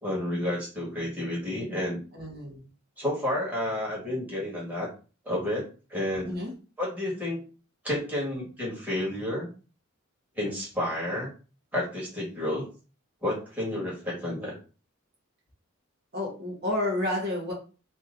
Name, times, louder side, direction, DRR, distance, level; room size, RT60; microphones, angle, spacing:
voice 1, 0.0-2.0 3.0-4.9 5.2-6.3 6.8-7.4 7.8-9.5 10.3-11.3 11.7-12.6 13.2-14.5, left 1 dB, 10° right, -6 dB, 1.6 m, -30 dB
voice 2, 2.1-2.6 6.3-6.5 16.1-17.5, left 1 dB, 50° right, -2 dB, 1.3 m, -30 dB
3.0 x 2.8 x 3.8 m, 0.34 s
head